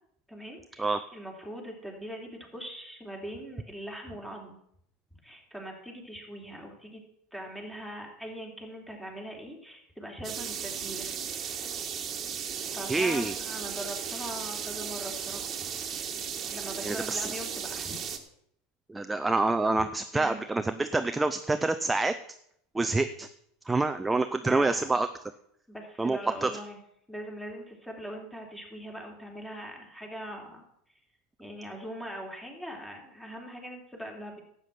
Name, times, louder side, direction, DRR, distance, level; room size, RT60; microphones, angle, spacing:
voice 1, 0.3-4.6 5.2-7.0 7.3-11.1 12.7-15.5 16.5-18.0 20.1-20.4 23.7-23.9 24.4-24.9 25.7-26.8 27.1-30.6 31.4-34.4, equal, 5° left, 1 dB, 3.5 m, -41 dB
sound 1, 10.2-18.2, right 7 dB, 35° right, 1.6 m, -36 dB
voice 2, 12.9-13.3 16.8-17.3 18.9-22.2 22.7-23.3 23.7-25.1 26.0-26.5, right 3 dB, 10° right, 10 dB, 0.6 m, -27 dB
12.5 x 8.3 x 5.8 m, 0.70 s
hypercardioid pair, 80°, 0 cm